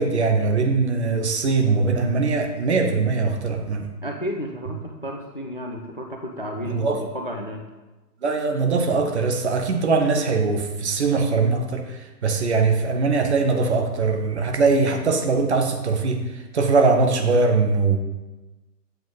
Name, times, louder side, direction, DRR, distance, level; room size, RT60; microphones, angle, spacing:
voice 1, 0.0-3.9 6.6-7.0 8.2-18.0, right 4 dB, 40° right, 5 dB, 0.9 m, -21 dB
voice 2, 4.0-7.6, equal, 35° left, 2 dB, 0.4 m, -32 dB
7.9 x 4.5 x 3.9 m, 1.1 s
figure-of-eight pair, 135°, 50 cm